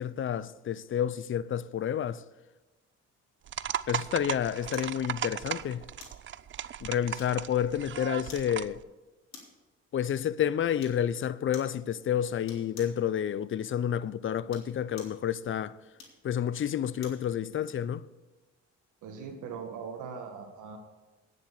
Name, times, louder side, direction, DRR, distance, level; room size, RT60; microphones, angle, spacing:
voice 1, 0.0-2.2 3.9-5.9 6.8-8.8 9.9-15.8 16.2-18.0, left 9 dB, 45° left, 0.5 m, -30 dB
sound 1, 3.5-8.8, right 10 dB, 40° right, 0.5 m, -36 dB
sound 2, 4.7-5.0 6.0-6.2 7.2-7.6 8.3-8.5 9.3-9.6 10.8-11.0 11.5-11.8 12.5-13.0 14.4-15.2 16.0-17.3 17.7-17.8, left 4 dB, 65° left, 3.6 m, -49 dB
voice 2, 19.0-20.8, right 6 dB, 80° right, 1.6 m, -40 dB
9.8 x 7.3 x 8.1 m
cardioid pair, 90°, 30 cm